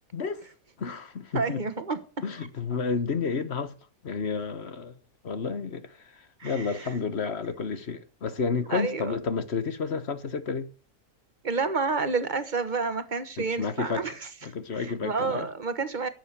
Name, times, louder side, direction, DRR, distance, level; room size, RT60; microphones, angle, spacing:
voice 1, 0.1-0.4 0.8-1.6 2.2-3.8 4.0-5.0 5.2-10.7 13.4-15.5, left 5 dB, 50° left, 1.3 m, -31 dB
voice 2, 1.3-2.0 6.4-6.7 8.7-9.2 11.4-14.1 14.7-16.1, right 4 dB, 35° right, 1.3 m, -29 dB
11.5 x 8.1 x 6.7 m
omnidirectional pair, 1.6 m